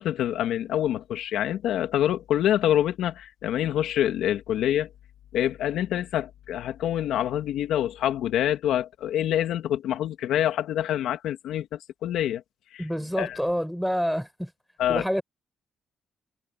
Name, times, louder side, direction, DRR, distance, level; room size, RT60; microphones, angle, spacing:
voice 1, 0.0-4.9 5.3-12.4 13.2-13.4 14.8-15.0, left 11 dB, 80° left, 2.5 m, -26 dB
voice 2, 12.8-14.5 14.9-15.2, equal, ahead, 7.3 m, -27 dB
cardioid pair, 90°, 0 cm